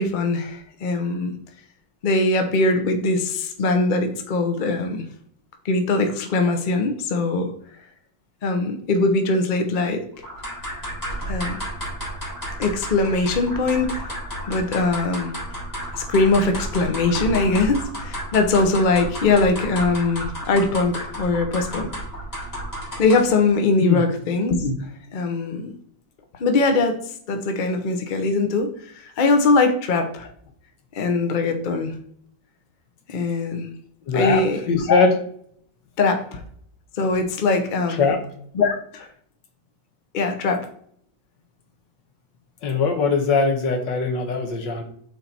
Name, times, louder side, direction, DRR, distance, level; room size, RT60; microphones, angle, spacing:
voice 1, 0.0-1.4 2.0-5.0 5.6-7.5 8.4-10.0 11.3-11.6 12.6-15.3 15.9-22.0 23.0-24.8 25.1-25.7 26.4-27.0 27.3-30.3 30.9-31.9 33.1-33.7 34.1-34.6 34.9-35.0 36.0-36.4 37.0-38.0 38.5-39.1 40.1-40.7, left 3 dB, 60° left, 5 dB, 0.5 m, -21 dB
sound 1, 10.2-23.4, equal, 10° left, 2.7 m, -32 dB
voice 2, 34.1-35.1 37.9-38.2 42.6-44.8, left 4 dB, 75° left, 4 dB, 1.7 m, -21 dB
6.4 x 4.1 x 4.2 m, 0.64 s
omnidirectional pair, 2.0 m